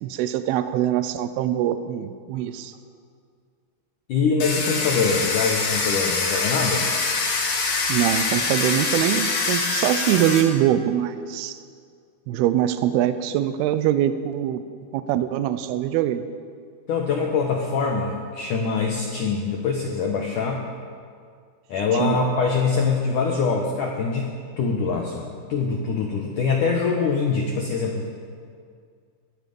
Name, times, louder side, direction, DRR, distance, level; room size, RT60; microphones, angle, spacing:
voice 1, 0.0-2.7 7.9-11.6 12.3-14.6 14.9-16.2 21.9-22.2, right 11 dB, 90° right, 11 dB, 2.2 m, -23 dB
voice 2, 4.1-6.9 16.9-20.6 21.7-24.3 24.6-28.1, left 5 dB, 75° left, 0 dB, 1.9 m, -24 dB
Domestic sounds home sounds, 4.4-10.4, left 4 dB, 50° left, 2.8 m, -24 dB
22.0 x 11.5 x 5.4 m, 2.1 s
omnidirectional pair, 5.3 m